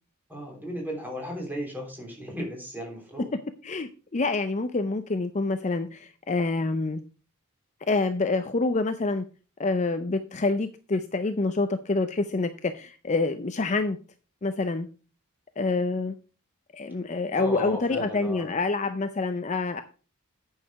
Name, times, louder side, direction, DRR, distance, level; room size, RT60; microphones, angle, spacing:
voice 1, 0.3-3.3 17.3-18.5, left 1 dB, 10° right, 1 dB, 3.2 m, -35 dB
voice 2, 3.6-7.0 7.9-9.2 9.6-14.0 14.4-14.9 15.6-16.1 16.7-19.8, left 3 dB, 30° left, 9 dB, 0.5 m, -27 dB
8.8 x 6.5 x 4.7 m, 0.35 s
head